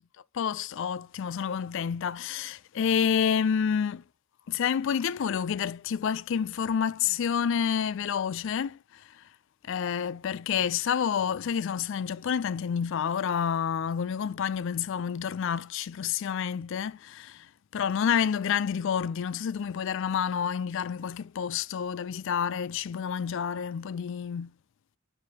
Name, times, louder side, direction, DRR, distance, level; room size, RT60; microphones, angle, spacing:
voice 1, 0.3-4.0 4.5-9.3 9.6-24.5, left 7 dB, 55° left, 0.3 m, -29 dB
9.4 x 4.7 x 2.8 m
head